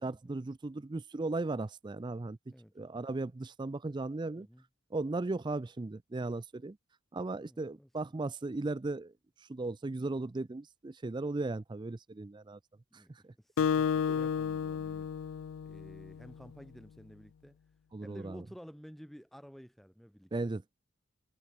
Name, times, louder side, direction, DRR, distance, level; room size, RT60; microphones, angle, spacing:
voice 1, 0.0-4.5 4.9-6.8 7.1-9.1 9.5-12.6 13.2-13.3 17.9-18.4 20.3-20.7, right 2 dB, 20° right, 0.4 m, -36 dB
voice 2, 7.4-7.9 12.9-15.1 15.6-17.6 18.0-20.5, equal, ahead, 4.6 m, -52 dB
Acoustic guitar, 13.6-16.3, left 7 dB, 75° left, 0.3 m, -32 dB
head